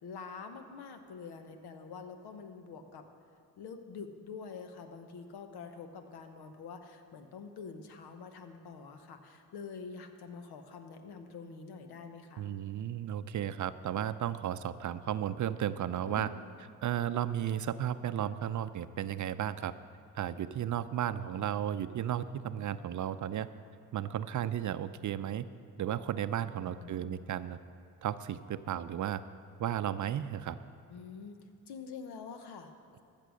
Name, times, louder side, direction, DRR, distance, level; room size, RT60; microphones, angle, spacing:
voice 1, 0.0-3.1 3.6-12.5 16.1-16.5 26.6-27.3 30.9-33.0, left 5 dB, 75° left, 7 dB, 1.0 m, -46 dB
voice 2, 12.4-16.3 16.8-19.7 20.1-23.5 23.9-25.5 25.8-27.6 28.0-29.2 29.6-30.6, right 10 dB, 50° right, 13 dB, 0.5 m, -34 dB
14.0 x 6.7 x 6.4 m, 2.5 s
supercardioid pair, 50°, 39 cm